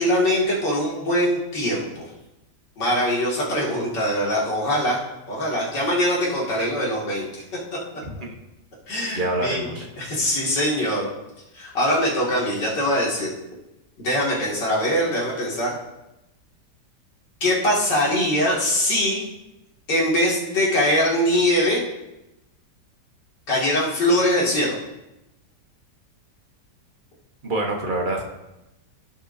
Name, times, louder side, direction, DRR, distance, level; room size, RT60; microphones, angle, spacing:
voice 1, 0.0-2.0 2.8-5.0 5.3-7.3 8.2-8.3 8.9-9.7 10.0-11.1 11.5-13.3 14.0-15.7 17.4-19.2 19.9-21.8 23.5-24.8, equal, 80° left, -5 dB, 3.0 m, -22 dB
voice 2, 8.0-8.3 9.1-9.9 27.4-28.2, right 2 dB, 30° right, 0 dB, 1.2 m, -26 dB
16.0 x 6.4 x 2.7 m, 0.94 s
omnidirectional pair, 1.9 m